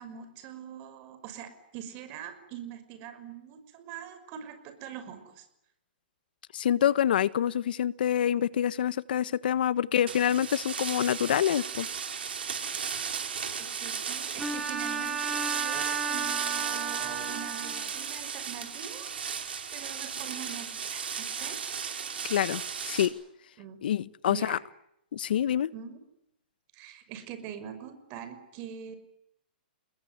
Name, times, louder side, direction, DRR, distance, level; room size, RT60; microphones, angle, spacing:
voice 1, 0.0-5.5 9.9-10.2 13.6-19.1 19.7-21.6 23.6-23.8 24.3-24.6 25.7-26.0 26.7-29.0, right 9 dB, 35° right, 10 dB, 5.9 m, -43 dB
voice 2, 6.5-11.9 22.2-23.1 23.8-24.6 25.1-25.7, left 10 dB, 65° left, 17 dB, 1.3 m, -26 dB
sound 1, 10.1-23.1, right 7 dB, 85° right, 5.5 m, -35 dB
Bowed string instrument, 14.4-18.1, right 6 dB, 5° right, 3.9 m, -33 dB
29.5 x 21.0 x 9.6 m, 0.79 s
hypercardioid pair, 150°, 5 cm